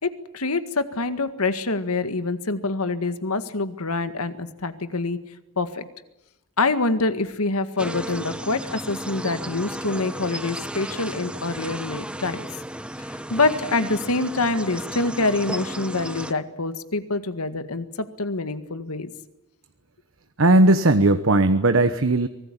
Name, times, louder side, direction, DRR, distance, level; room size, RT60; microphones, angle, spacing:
voice 1, 0.0-5.2 5.6-5.8 6.6-12.4 13.3-19.1, left 3 dB, 80° left, 10 dB, 1.9 m, -25 dB
sound 1, 7.8-16.3, right 1 dB, 5° right, 0.9 m, -34 dB
voice 2, 20.4-22.3, right 2 dB, 60° right, 10 dB, 1.1 m, -17 dB
24.5 x 19.0 x 10.0 m, 0.92 s
head